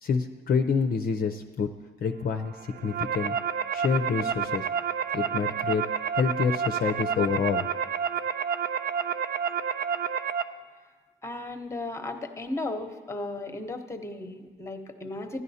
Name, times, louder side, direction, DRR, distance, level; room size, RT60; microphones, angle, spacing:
voice 1, 0.0-1.7 2.0-2.6 2.8-3.4 3.7-4.7 5.1-7.7, left 5 dB, 45° left, 6 dB, 0.5 m, -27 dB
sound 1, 2.6-10.4, right 7 dB, 50° right, 0.4 m, -29 dB
voice 2, 11.2-15.4, left 2 dB, 15° left, 5 dB, 0.9 m, -35 dB
15.5 x 11.0 x 2.7 m, 1.4 s
cardioid pair, 90°, 20 cm